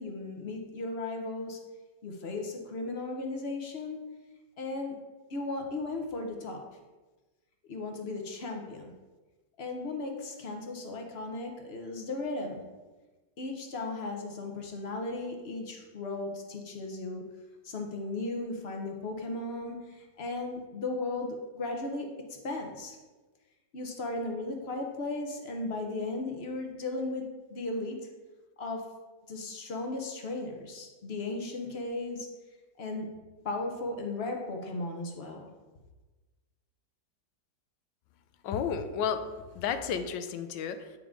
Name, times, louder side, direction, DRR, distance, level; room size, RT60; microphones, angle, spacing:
voice 1, 0.0-1.6 2.0-4.0 4.6-4.9 5.3-6.6 7.7-8.9 9.6-12.6 13.4-17.2 17.6-22.1 22.4-23.0 23.7-27.2 27.5-28.0 28.6-28.8 29.3-32.3 32.8-33.1 33.4-35.5, left 2 dB, 45° left, 3 dB, 0.9 m, -36 dB
voice 2, 38.4-39.2 39.5-40.8, left 7 dB, 80° left, 9 dB, 1.2 m, -31 dB
8.5 x 4.8 x 3.7 m, 1.2 s
omnidirectional pair, 2.0 m